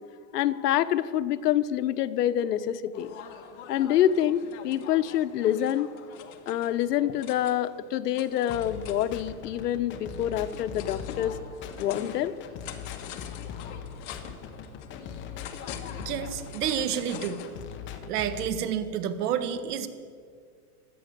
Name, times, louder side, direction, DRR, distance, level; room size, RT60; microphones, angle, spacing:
voice 1, 0.3-3.1 3.7-5.9 6.5-11.3 11.8-12.3, left 11 dB, 90° left, 11 dB, 0.9 m, -26 dB
sound 1, 2.9-17.6, left 8 dB, 50° left, 1.7 m, -45 dB
sound 2, 8.5-18.5, left 7 dB, 25° left, 1.0 m, -41 dB
voice 2, 16.0-17.5 18.1-19.9, right 9 dB, 80° right, 10 dB, 1.6 m, -29 dB
16.5 x 12.5 x 6.7 m, 2.1 s
supercardioid pair, 155°, 46 cm